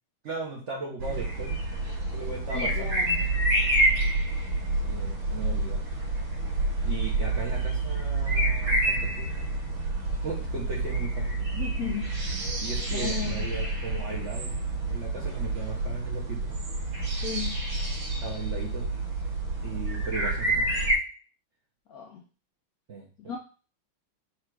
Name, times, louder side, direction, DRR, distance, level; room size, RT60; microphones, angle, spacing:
voice 1, 0.2-1.6 2.1-3.1 4.8-5.8 6.8-9.5 10.2-11.5 12.6-16.6 18.2-19.0 19.6-20.7 22.9-23.4, right 4 dB, 50° right, -2 dB, 0.9 m, -37 dB
sound 1, 1.0-21.0, right 2 dB, 85° right, 1.9 m, -28 dB
voice 2, 2.5-3.2 11.5-12.1 12.9-13.5 17.2-17.6 21.9-22.2 23.3-23.4, left 8 dB, 75° left, 1 dB, 0.8 m, -35 dB
4.4 x 2.5 x 4.5 m, 0.36 s
omnidirectional pair, 2.1 m